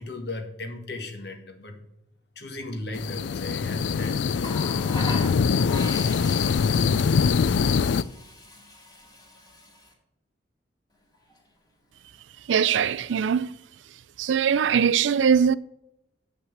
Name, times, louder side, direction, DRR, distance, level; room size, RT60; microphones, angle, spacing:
voice 1, 0.0-1.8 2.4-5.3 5.7-6.3, left 2 dB, 60° left, 1.7 m, -37 dB
sound 1, 2.9-8.0, left 5 dB, 80° left, 0.4 m, -23 dB
Water tap faucet, 4.4-9.9 11.1-11.3, left 1 dB, 20° left, 2.1 m, -40 dB
voice 2, 12.5-13.5 14.2-15.6, right 7 dB, 85° right, 0.4 m, -21 dB
7.9 x 5.9 x 7.2 m
head